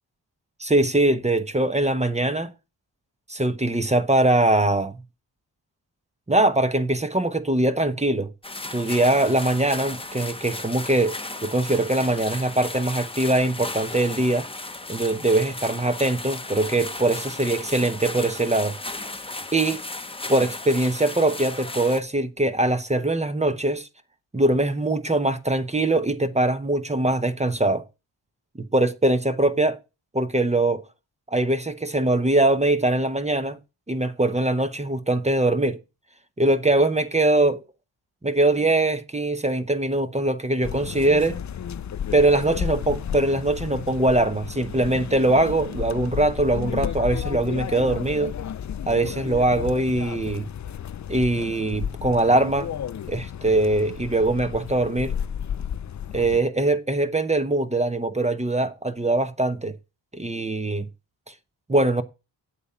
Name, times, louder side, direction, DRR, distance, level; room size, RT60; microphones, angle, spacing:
voice 1, 0.6-2.5 3.3-5.0 6.3-8.3 8.7-11.1 11.4-14.5 14.9-18.8 19.5-19.8 20.3-23.9 24.3-27.8 28.6-29.8 30.1-30.8 31.3-33.6 33.9-35.8 36.4-37.6 38.2-41.4 42.1-48.3 48.9-50.5 51.1-52.7 53.1-55.1 56.1-59.8 60.1-60.9 61.7-62.0, right 2 dB, 15° right, 1.0 m, -22 dB
sound 1, 8.4-22.0, left 2 dB, 10° left, 1.0 m, -35 dB
sound 2, 40.6-56.4, left 9 dB, 40° left, 0.5 m, -32 dB
8.1 x 7.5 x 5.7 m
cardioid pair, 75°, 44 cm